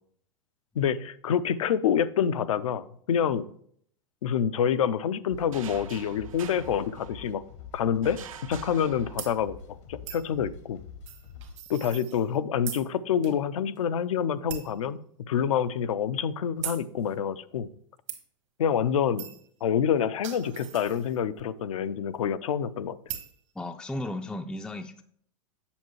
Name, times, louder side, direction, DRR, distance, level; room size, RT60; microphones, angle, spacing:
voice 1, 0.8-3.4 4.2-7.4 7.7-8.2 8.5-9.6 9.9-10.8 11.7-15.0 15.3-17.7 18.6-19.2 19.6-23.0, left 8 dB, 80° left, 14 dB, 0.5 m, -27 dB
sound 1, 5.3-11.6, left 6 dB, 65° left, 0.8 m, -46 dB
sound 2, 5.5-7.5 8.0-9.6, right 8 dB, 80° right, 0.8 m, -46 dB
sound 3, 9.2-9.3 10.1-10.3 11.1-12.4 12.7-12.9 13.2-13.3 13.8-13.9 14.5-14.8 15.4-15.5 16.6-16.8 18.1-18.2 19.2-19.5 20.0-21.4 23.1-23.4, right 11 dB, 65° right, 1.5 m, -39 dB
voice 2, 23.6-25.0, left 1 dB, 5° left, 5 dB, 0.3 m, -35 dB
7.4 x 7.1 x 3.1 m, 0.62 s
hypercardioid pair, 110°, 17 cm